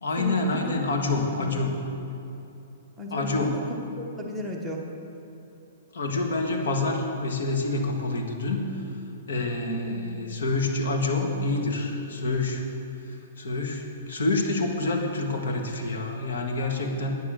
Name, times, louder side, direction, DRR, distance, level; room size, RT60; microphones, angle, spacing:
voice 1, 0.0-1.7 3.1-3.6 5.9-8.7 9.3-12.6 13.1-17.1, left 2 dB, 80° left, 2 dB, 1.7 m, -27 dB
voice 2, 1.1-1.5 3.0-4.8 9.6-10.2, equal, 5° right, -3 dB, 1.1 m, -34 dB
10.5 x 9.2 x 6.4 m, 2.8 s
hypercardioid pair, 155°, 0 cm